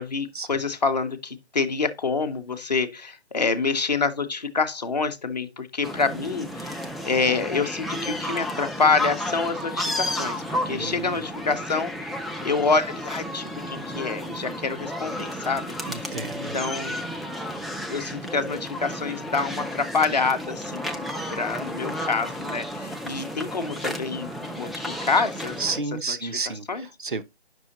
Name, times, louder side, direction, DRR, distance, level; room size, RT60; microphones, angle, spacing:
voice 1, 0.0-11.9 12.4-15.7 16.1-17.0 17.9-25.6 26.1-26.3 26.7-26.9, left 4 dB, 40° left, 0.7 m, -27 dB
sound 1, 5.8-25.8, equal, ahead, 0.3 m, -32 dB
voice 2, 10.7-11.2 15.9-16.6 25.6-27.2, right 4 dB, 50° right, 0.6 m, -31 dB
8.2 x 6.1 x 2.8 m
figure-of-eight pair, 160°, 32 cm